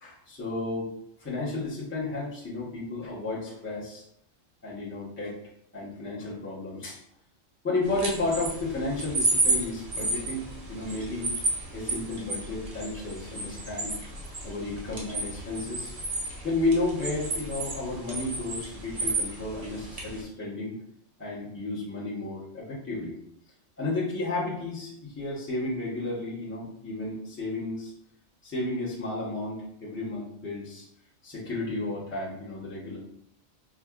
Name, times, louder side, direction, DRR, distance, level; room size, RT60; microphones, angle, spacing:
voice 1, 0.0-0.9 1.2-4.0 4.6-5.3 5.7-7.0 7.6-11.3 11.7-14.0 14.4-16.0 16.4-20.7 21.2-23.2 23.8-27.9 28.4-30.8 31.2-33.0, left 2 dB, 10° left, -7 dB, 0.9 m, -32 dB
sound 1, 7.8-20.2, right 2 dB, 35° right, 0.7 m, -32 dB
4.5 x 2.5 x 2.4 m, 0.75 s
omnidirectional pair, 1.3 m